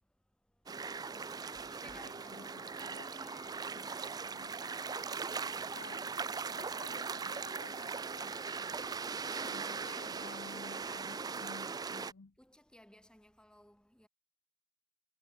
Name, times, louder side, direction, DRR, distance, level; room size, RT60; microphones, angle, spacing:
sound 1, 0.7-12.1, right 5 dB, 20° right, 0.3 m, -40 dB
voice 1, 0.9-3.6 9.0-11.2 12.4-14.1, left 1 dB, 5° left, 2.0 m, -59 dB
sound 2, 1.5-9.9, right 2 dB, 65° right, 2.1 m, -66 dB
voice 2, 2.0-3.2 3.5-4.6 5.7-6.1 6.5-8.4 9.4-12.4, left 4 dB, 75° left, 0.8 m, -54 dB
sound 3, 3.0-8.9, left 5 dB, 30° left, 3.0 m, -62 dB
head